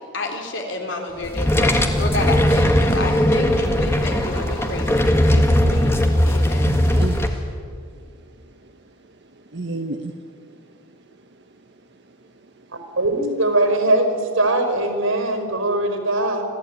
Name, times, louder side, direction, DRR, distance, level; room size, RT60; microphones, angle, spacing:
voice 1, 0.0-6.0 6.3-6.8, left 2 dB, 60° left, 2 dB, 3.8 m, -30 dB
sound 1, 1.1-7.4, equal, 85° left, 7.8 m, -35 dB
sound 2, 1.2-7.3, left 1 dB, 10° left, 1.6 m, -18 dB
voice 2, 6.6-7.4 7.9-8.0 8.4-8.7 9.4-10.6 12.1-12.2, right 2 dB, 55° right, 5 dB, 1.2 m, -32 dB
voice 3, 13.0-16.4, right 2 dB, 75° right, 6 dB, 5.4 m, -20 dB
26.0 x 15.5 x 9.3 m, 2.2 s
head